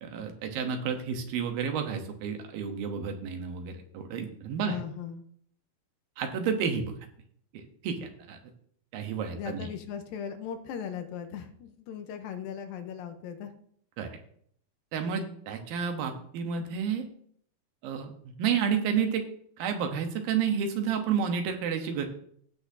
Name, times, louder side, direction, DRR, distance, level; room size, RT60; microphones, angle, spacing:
voice 1, 0.0-4.8 6.2-7.0 7.5-8.4 8.9-9.7 14.0-14.2 14.9-17.1 17.8-19.2 19.6-22.1, right 7 dB, 85° right, 5 dB, 2.9 m, -31 dB
voice 2, 4.6-5.3 9.3-13.5 15.0-15.4, left 8 dB, 85° left, 7 dB, 2.6 m, -38 dB
16.5 x 6.0 x 2.7 m, 0.63 s
omnidirectional pair, 4.1 m